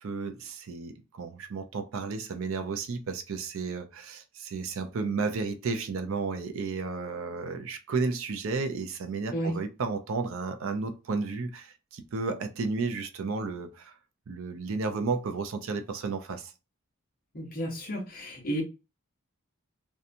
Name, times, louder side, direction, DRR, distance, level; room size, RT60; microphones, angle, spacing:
voice 1, 0.0-13.9 14.3-16.5, right 4 dB, 65° right, 0.4 m, -33 dB
voice 2, 17.3-18.6, equal, 40° left, 0.8 m, -32 dB
2.7 x 2.2 x 2.5 m
head